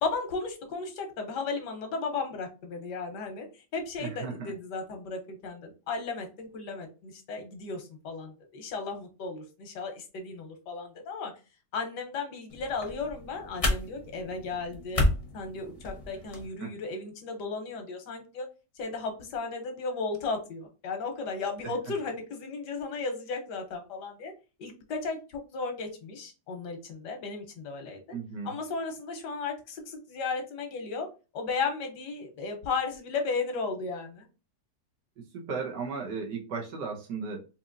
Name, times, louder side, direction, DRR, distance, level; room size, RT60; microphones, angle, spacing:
voice 1, 0.0-3.5 3.7-11.3 11.7-15.0 15.3-18.5 18.8-24.3 24.6-28.0 28.4-31.1 31.3-34.2, left 4 dB, 85° left, 4 dB, 1.5 m, -35 dB
voice 2, 4.0-4.5 16.6-16.7 21.6-21.7 28.1-28.5 35.3-37.4, right 5 dB, 85° right, -1 dB, 1.6 m, -35 dB
sound 1, 12.5-16.5, left 1 dB, 35° left, 0.6 m, -32 dB
4.2 x 2.8 x 2.5 m, 0.32 s
omnidirectional pair, 1.8 m